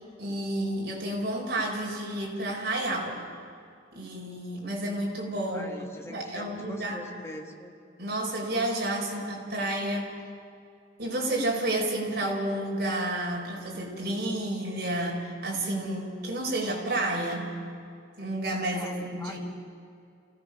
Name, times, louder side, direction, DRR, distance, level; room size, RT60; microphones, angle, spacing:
voice 1, 0.2-3.2 3.9-5.8 6.1-7.0 8.0-10.1 11.0-17.5 18.2-19.4, right 1 dB, 60° right, -2 dB, 4.5 m, -30 dB
voice 2, 5.5-7.7 18.7-19.5, left 1 dB, 15° left, 2 dB, 1.8 m, -42 dB
28.0 x 16.5 x 6.4 m, 2.5 s
head